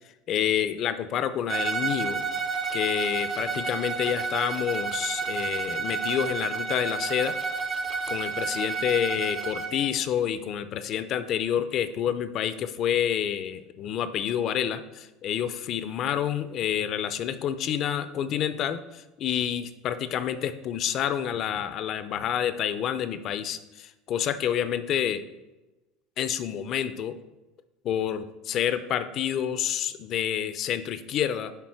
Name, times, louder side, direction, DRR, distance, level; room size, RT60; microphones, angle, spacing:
voice 1, 0.3-2.2 2.7-7.4 8.1-25.2 26.2-27.1 27.8-31.5, left 9 dB, 45° left, 12 dB, 0.6 m, -28 dB
Bowed string instrument, 1.5-9.8, right 4 dB, 30° right, 0.8 m, -30 dB
10.5 x 3.5 x 4.8 m, 1.1 s
supercardioid pair, 115°, 0 cm